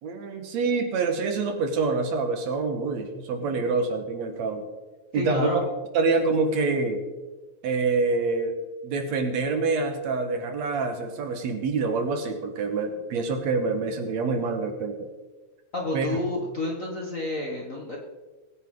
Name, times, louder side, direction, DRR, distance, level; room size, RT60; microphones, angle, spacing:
voice 1, 0.0-4.7 5.1-5.7 5.9-7.0 7.6-8.6 8.8-15.1 15.9-16.2, right 4 dB, 70° right, 6 dB, 2.5 m, -26 dB
voice 2, 5.1-5.7 15.7-18.0, left 2 dB, 40° left, -1 dB, 1.3 m, -30 dB
21.0 x 9.4 x 3.8 m, 1.2 s
omnidirectional pair, 3.3 m